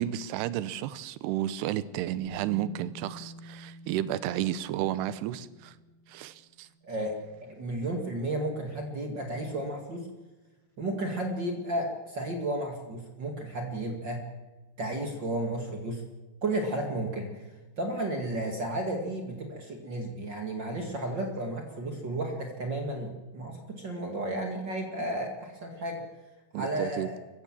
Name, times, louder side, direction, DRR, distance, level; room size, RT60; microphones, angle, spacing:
voice 1, 0.0-5.8 6.1-6.7 26.5-27.1, right 12 dB, 85° right, 16 dB, 2.8 m, -32 dB
Bass guitar, 2.2-8.3, right 1 dB, 85° left, 4.3 m, -50 dB
voice 2, 6.8-7.2 7.4-10.1 10.8-14.2 14.8-16.0 16.4-17.5 17.8-26.0 26.5-27.2, right 1 dB, 40° right, 3 dB, 1.9 m, -33 dB
25.0 x 15.0 x 7.5 m, 1.2 s
omnidirectional pair, 4.7 m